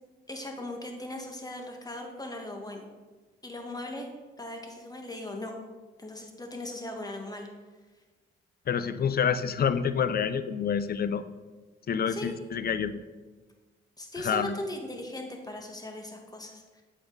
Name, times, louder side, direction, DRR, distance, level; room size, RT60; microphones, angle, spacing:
voice 1, 0.3-2.8 3.4-4.1 4.4-5.6 6.0-7.5 12.1-12.3 14.0-16.8, left 1 dB, 20° left, 2 dB, 1.6 m, -38 dB
voice 2, 8.7-11.2 11.9-13.0 14.2-14.6, left 7 dB, 45° left, 13 dB, 0.6 m, -28 dB
7.9 x 5.4 x 4.0 m, 1.3 s
supercardioid pair, 65°, 21 cm